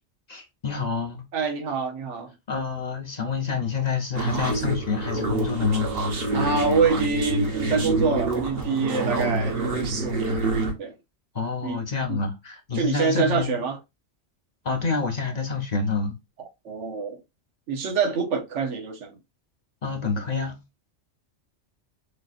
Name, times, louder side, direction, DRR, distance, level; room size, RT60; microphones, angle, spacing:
voice 1, 0.3-1.2 2.5-5.9 11.3-13.6 14.6-16.1 19.8-20.6, left 5 dB, 40° left, 0.8 m, -28 dB
voice 2, 1.3-2.3 6.3-10.4 10.8-10.9 11.6-11.8 12.1-12.2 12.7-13.8 16.4-17.2 17.7-19.2, right 5 dB, 85° right, 1.2 m, -26 dB
sound 1, 4.1-10.7, right 2 dB, 55° right, 1.3 m, -26 dB
6.4 x 2.7 x 2.4 m
omnidirectional pair, 1.2 m